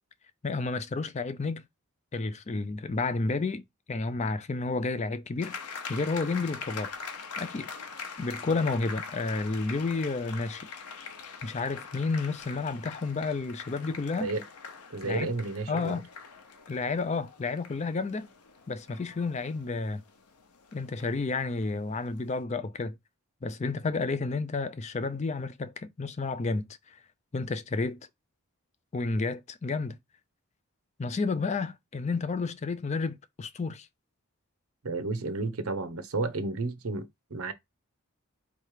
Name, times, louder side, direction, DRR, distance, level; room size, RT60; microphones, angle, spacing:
voice 1, 0.4-1.6 2.1-5.6 5.9-6.9 7.4-7.7 8.2-10.7 11.4-14.3 15.0-15.3 15.7-16.1 16.7-18.3 18.7-20.0 20.7-23.0 23.4-27.0 27.3-28.0 28.9-30.0 31.0-33.9, left 3 dB, 30° left, 0.4 m, -31 dB
sound 1, 5.4-22.0, left 5 dB, 90° left, 0.8 m, -43 dB
voice 2, 14.9-16.0 34.8-37.5, right 3 dB, 75° right, 0.8 m, -32 dB
3.3 x 3.2 x 4.8 m
head